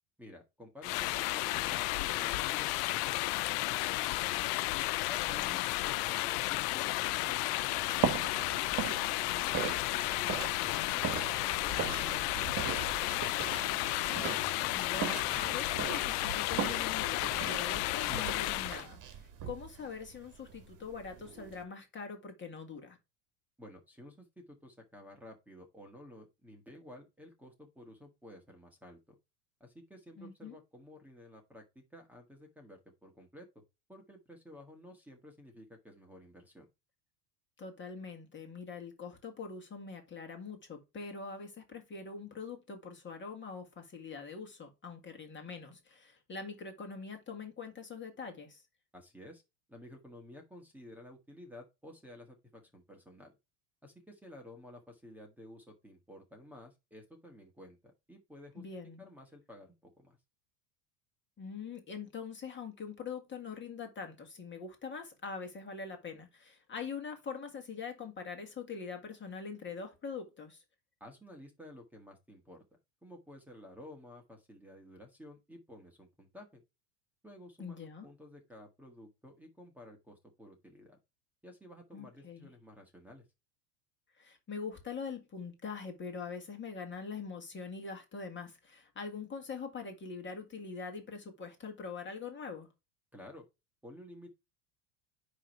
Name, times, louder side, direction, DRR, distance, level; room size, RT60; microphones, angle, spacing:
voice 1, 0.2-4.7 5.1-8.7 9.2-13.4 23.6-29.2 29.6-33.5 33.9-36.7 48.9-49.4 49.7-53.4 53.8-58.6 59.0-60.2 71.0-72.6 73.0-76.6 77.2-81.0 81.4-83.2 93.1-93.4 93.8-94.4, left 1 dB, 5° right, 1.7 m, -53 dB
sound 1, 0.8-18.9, left 20 dB, 75° left, 0.6 m, -33 dB
voice 2, 5.4-6.1 14.7-23.0 30.2-30.6 37.6-48.6 58.6-59.0 61.4-70.6 77.6-78.1 81.9-82.5 84.2-92.7, left 5 dB, 25° left, 2.0 m, -43 dB
sound 2, 7.6-21.6, right 8 dB, 40° right, 1.6 m, -39 dB
9.8 x 3.4 x 4.5 m
supercardioid pair, 130°, 47 cm